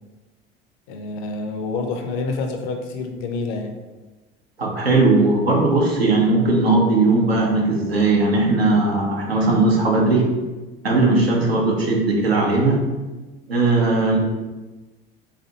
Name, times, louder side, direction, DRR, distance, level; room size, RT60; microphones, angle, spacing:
voice 1, 0.9-3.8, left 3 dB, 50° left, 4 dB, 0.6 m, -27 dB
voice 2, 4.6-10.3 10.8-12.8 13.5-14.2, right 2 dB, 85° right, -2 dB, 0.8 m, -18 dB
4.2 x 2.6 x 2.8 m, 1.2 s
figure-of-eight pair, 70°, 30 cm